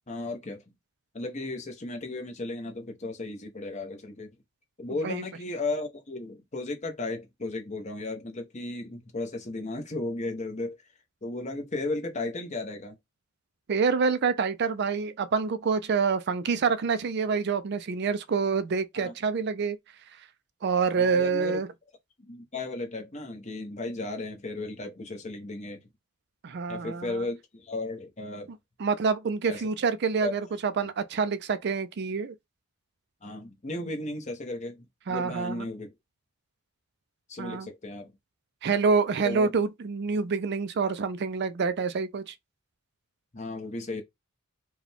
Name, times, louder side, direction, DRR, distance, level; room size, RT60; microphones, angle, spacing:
voice 1, 0.1-0.6 1.1-4.3 4.8-10.8 11.2-13.0 18.9-19.1 20.9-21.6 22.2-25.8 26.7-28.5 29.5-29.7 30.2-30.3 33.2-35.9 37.3-38.1 39.2-39.5 43.3-44.0, left 2 dB, 30° left, 0.9 m, -35 dB
voice 2, 13.7-19.8 20.6-21.7 26.4-27.3 28.8-32.3 35.1-35.6 37.4-37.7 38.6-42.3, right 5 dB, 50° right, 0.4 m, -27 dB
4.8 x 2.3 x 3.4 m
head